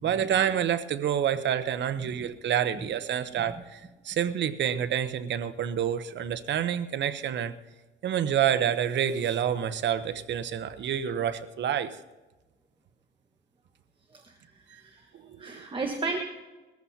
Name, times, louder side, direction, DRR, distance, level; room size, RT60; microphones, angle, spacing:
voice 1, 0.0-7.5 8.0-12.0, right 9 dB, 65° right, 11 dB, 0.9 m, -28 dB
voice 2, 14.1-15.0 15.4-16.2, right 3 dB, 25° right, 2 dB, 1.5 m, -34 dB
21.0 x 14.5 x 2.9 m, 1.2 s
cardioid pair, 90°, 20 cm